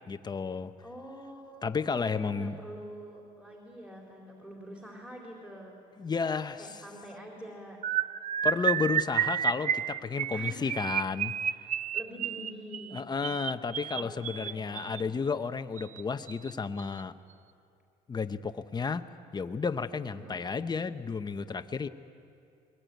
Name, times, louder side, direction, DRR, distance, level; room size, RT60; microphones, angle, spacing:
voice 1, 0.1-0.7 1.6-2.6 6.0-6.8 8.4-11.3 12.9-17.1 18.1-19.1 19.3-21.9, left 5 dB, 25° left, 10 dB, 0.9 m, -32 dB
voice 2, 0.8-5.8 6.6-7.8 10.3-10.8 11.9-13.3 13.9-15.1 20.0-20.4, equal, 5° right, -2 dB, 4.1 m, -46 dB
sound 1, 7.8-15.0 15.8-16.0 16.3-16.5 16.8-17.0, right 9 dB, 50° right, 0.5 m, -31 dB
23.0 x 20.5 x 9.3 m, 2.5 s
cardioid pair, 110°, 17 cm